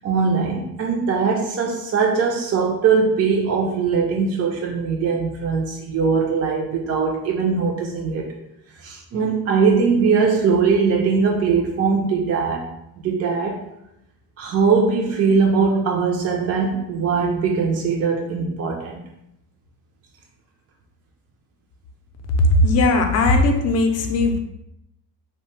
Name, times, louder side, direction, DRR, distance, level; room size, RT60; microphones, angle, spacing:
voice 1, 0.0-8.3 8.8-12.7 13.0-13.6 14.4-19.0, right 5 dB, 45° right, -1 dB, 0.4 m, -21 dB
voice 2, 22.5-24.4, left 2 dB, 45° left, 5 dB, 0.5 m, -18 dB
2.7 x 2.1 x 3.1 m, 0.83 s
cardioid pair, 125°, 36 cm